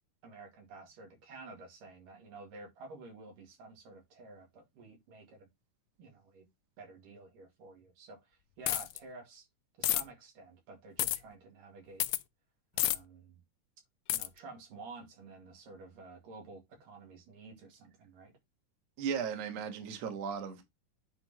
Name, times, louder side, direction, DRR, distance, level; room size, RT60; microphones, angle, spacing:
voice 1, 0.2-5.5 6.0-6.5 6.8-9.5 9.8-12.1 12.7-13.4 14.1-18.3, right 3 dB, 85° right, 3.8 m, -51 dB
sound 1, 8.7-9.0 9.8-10.0 11.0-11.2 12.0-12.2 12.8-13.0 14.1-14.3, left 15 dB, 85° left, 1.6 m, -29 dB
voice 2, 19.0-20.6, right 7 dB, 60° right, 2.3 m, -36 dB
9.4 x 4.4 x 3.0 m
omnidirectional pair, 3.7 m